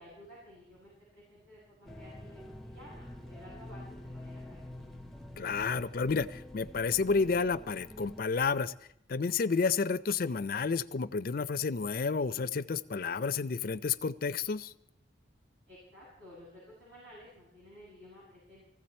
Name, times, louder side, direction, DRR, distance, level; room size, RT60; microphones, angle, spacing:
voice 1, 0.0-5.0 15.7-18.6, left 1 dB, 85° right, -8 dB, 7.8 m, -54 dB
sound 1, 1.8-8.2, left 1 dB, ahead, 0.6 m, -47 dB
voice 2, 5.4-8.7 9.1-14.7, left 5 dB, 50° left, 11 dB, 0.5 m, -30 dB
19.0 x 15.5 x 4.4 m, 0.75 s
head